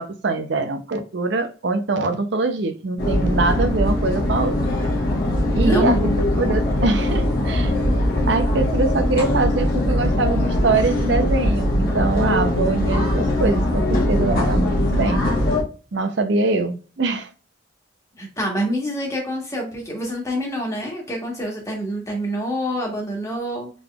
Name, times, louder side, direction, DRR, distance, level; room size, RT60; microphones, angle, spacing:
voice 1, 0.0-4.5 5.5-6.0 6.3-7.7 8.3-15.3 15.9-17.3, right 3 dB, 65° right, 0.6 m, -23 dB
sound 1, 3.0-15.6, left 1 dB, 50° left, 1.1 m, -21 dB
voice 2, 5.6-6.1 18.2-23.7, equal, 15° left, 1.3 m, -26 dB
3.8 x 3.4 x 2.3 m
head